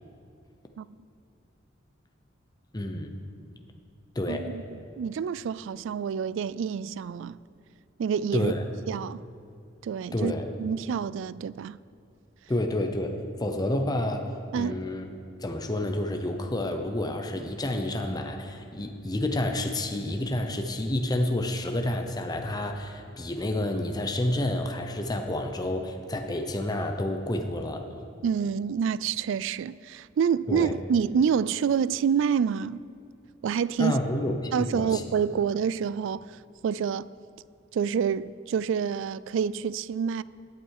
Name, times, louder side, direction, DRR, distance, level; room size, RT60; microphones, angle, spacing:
voice 1, 2.7-3.2 4.1-4.5 8.3-8.6 10.1-10.5 12.5-13.1 13.4-14.3 14.5-15.1 15.4-27.9 30.5-30.7 33.8-35.0, left 1 dB, 20° left, 0.8 m, -29 dB
voice 2, 4.3-4.6 5.0-7.4 8.0-8.5 8.9-9.2 9.8-10.3 10.6-11.8 14.5-14.8 28.2-32.8 33.4-34.0 34.5-37.1 37.7-40.2, right 7 dB, 70° right, 0.3 m, -27 dB
17.0 x 9.2 x 4.7 m
head